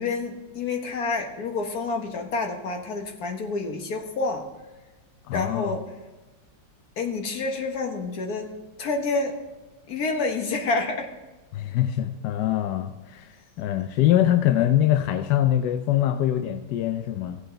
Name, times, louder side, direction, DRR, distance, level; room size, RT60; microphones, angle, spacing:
voice 1, 0.0-4.4 5.3-5.8 7.0-8.5 8.8-9.4 9.9-11.1, left 3 dB, 50° left, 3 dB, 1.6 m, -28 dB
voice 2, 5.3-5.8 11.5-17.4, left 12 dB, 75° left, 9 dB, 1.0 m, -23 dB
16.0 x 7.9 x 3.8 m, 1.2 s
omnidirectional pair, 2.2 m